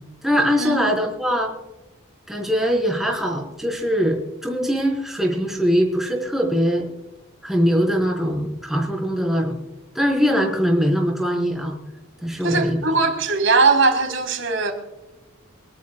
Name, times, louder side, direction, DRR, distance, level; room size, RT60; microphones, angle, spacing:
voice 1, 0.2-1.5 2.3-6.9 7.4-9.6 9.9-11.8 12.2-12.8, equal, ahead, 4.2 m, -21 dB
voice 2, 12.4-14.7, right 3 dB, 70° right, 3.8 m, -19 dB
25.5 x 12.5 x 2.3 m
head